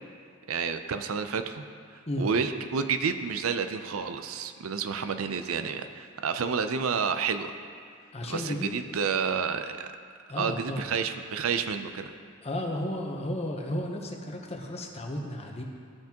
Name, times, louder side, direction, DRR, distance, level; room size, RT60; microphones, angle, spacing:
voice 1, 0.5-1.6 1.9-7.5 8.2-9.9 10.4-12.1, right 6 dB, 80° right, 9 dB, 0.5 m, -30 dB
voice 2, 8.1-8.8 10.3-10.9 12.4-15.6, left 1 dB, 30° left, 1 dB, 0.9 m, -33 dB
15.0 x 5.9 x 2.9 m, 2.1 s
head